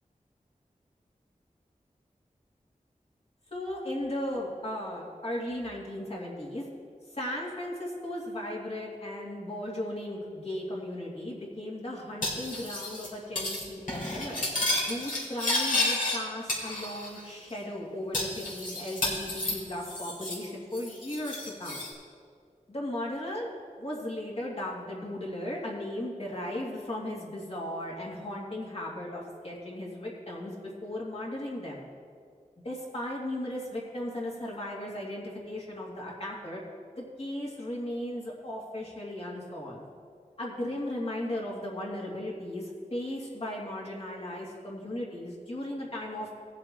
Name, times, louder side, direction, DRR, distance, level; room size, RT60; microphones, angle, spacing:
voice 1, 3.5-6.7 7.1-14.5 14.9-21.8 22.7-23.5 23.8-31.9 32.6-36.6 37.0-39.8 40.4-46.3, left 1 dB, 45° left, -4 dB, 2.6 m, -36 dB
Cutlery silverware, 12.2-13.1 13.4-13.6 13.9-16.2 16.5-17.2 17.5-17.6 18.1-20.5 20.7-21.9, left 2 dB, 75° left, 3.0 m, -31 dB
18.5 x 7.4 x 3.1 m, 2.2 s
wide cardioid pair, 80°, 14 cm